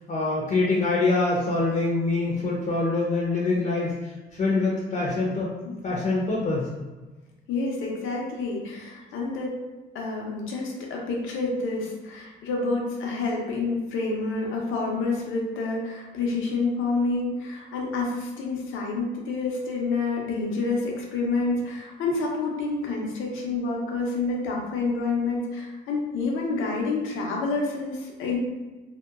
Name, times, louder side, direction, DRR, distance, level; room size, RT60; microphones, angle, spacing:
voice 1, 0.1-3.9 4.3-5.5 5.8-6.7, left 3 dB, 40° left, -4 dB, 0.6 m, -24 dB
voice 2, 7.5-9.5 9.9-28.4, left 3 dB, 85° left, -1 dB, 0.7 m, -28 dB
2.7 x 2.2 x 2.3 m, 1.2 s
cardioid pair, 90°, 20 cm